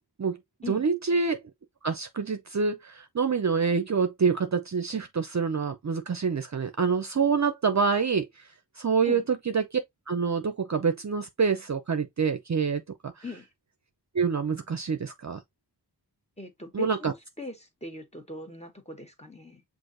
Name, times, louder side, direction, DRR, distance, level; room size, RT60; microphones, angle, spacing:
voice 1, 0.7-1.4 1.8-8.3 8.8-9.8 10.1-13.2 14.1-15.4 16.7-17.1, right 5 dB, 40° right, 0.6 m, -26 dB
voice 2, 16.4-19.6, left 1 dB, 15° left, 1.4 m, -40 dB
6.2 x 2.6 x 2.6 m
cardioid pair, 40°, 42 cm